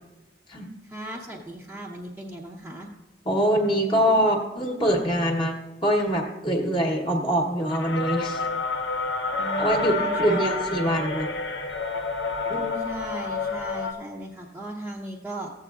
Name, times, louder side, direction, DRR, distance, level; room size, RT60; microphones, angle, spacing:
voice 1, 0.8-2.9 9.4-10.6 12.8-15.5, right 1 dB, 10° right, -5 dB, 0.7 m, -37 dB
voice 2, 3.3-5.5 5.8-8.4 9.6-11.3 12.5-12.8, equal, 30° left, -1 dB, 1.0 m, -24 dB
sound 1, 7.7-13.9, left 3 dB, 80° left, 0.9 m, -29 dB
15.0 x 8.1 x 2.4 m, 1.1 s
head